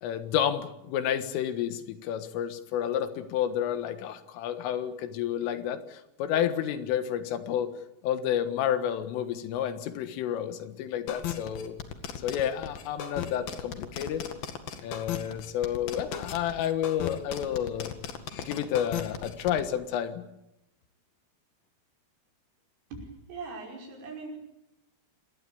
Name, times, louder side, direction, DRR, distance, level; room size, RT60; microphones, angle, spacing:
voice 1, 0.0-7.7 8.0-11.8 12.2-14.2 14.8-17.9 18.5-20.2, left 10 dB, 80° left, 10 dB, 4.0 m, -30 dB
sound 1, 11.1-19.6, left 9 dB, 60° left, 3.2 m, -36 dB
voice 2, 22.9-24.4, right 3 dB, 75° right, 1 dB, 8.1 m, -41 dB
27.0 x 19.5 x 8.6 m, 0.88 s
omnidirectional pair, 5.7 m